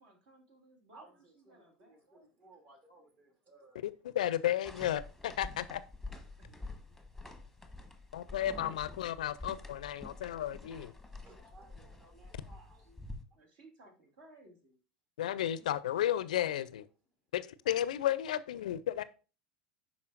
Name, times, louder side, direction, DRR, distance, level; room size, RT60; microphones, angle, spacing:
voice 1, 0.0-2.3 6.4-6.5 13.3-14.8 15.6-15.7 18.5-18.6, right 2 dB, 60° right, 2.4 m, -60 dB
voice 2, 0.9-4.0 4.5-4.6 6.5-6.7 10.1-10.2 11.2-13.2 15.8-15.9, right 2 dB, 45° right, 2.5 m, -60 dB
voice 3, 3.8-5.8 8.1-10.9 15.2-16.9 17.3-19.0, left 12 dB, 75° left, 0.4 m, -33 dB
sound 1, 4.6-13.2, left 2 dB, ahead, 1.0 m, -48 dB
11.0 x 4.3 x 2.5 m
hypercardioid pair, 85°, 4 cm